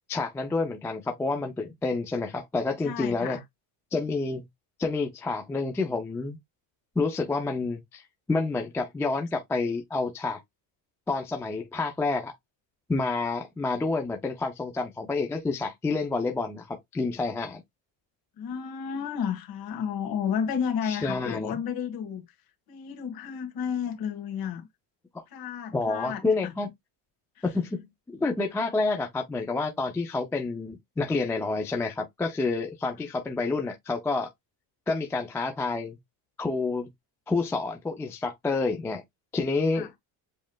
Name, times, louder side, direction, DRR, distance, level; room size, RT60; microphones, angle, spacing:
voice 1, 0.1-3.4 3.9-4.4 4.8-6.4 7.0-8.0 8.3-10.4 11.1-12.3 12.9-17.6 20.9-21.6 25.1-25.2 25.7-26.7 27.4-34.3 34.9-36.0 36.4-36.9 37.3-39.0 39.3-40.0, left 3 dB, 5° left, 0.3 m, -29 dB
voice 2, 2.8-3.4 12.1-12.2 18.4-22.2 22.7-24.7 25.3-26.5 27.3-27.4 28.6-28.7 39.7-39.9, left 7 dB, 50° left, 1.7 m, -32 dB
7.3 x 3.1 x 2.3 m
cardioid pair, 175°, 45 cm